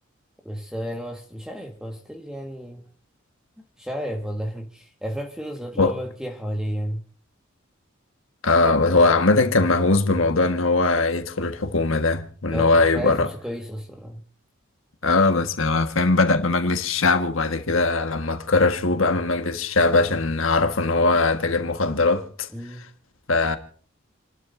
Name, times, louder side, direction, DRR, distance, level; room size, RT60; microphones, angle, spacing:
voice 1, 0.4-2.9 3.6-7.0 12.5-14.2 22.5-22.8, equal, 5° right, 1.6 m, -32 dB
voice 2, 8.4-13.3 15.0-22.5 23.3-23.6, left 3 dB, 70° left, 1.5 m, -20 dB
29.0 x 12.5 x 2.6 m
head